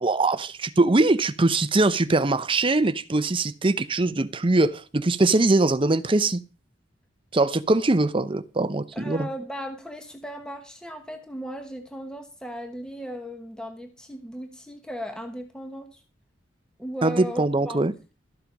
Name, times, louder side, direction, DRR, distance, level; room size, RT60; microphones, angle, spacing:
voice 1, 0.0-6.4 7.3-9.3 17.0-17.9, right 2 dB, 25° right, 0.7 m, -22 dB
voice 2, 8.9-16.0 16.8-17.8, equal, 5° left, 1.0 m, -36 dB
13.0 x 7.4 x 5.3 m
head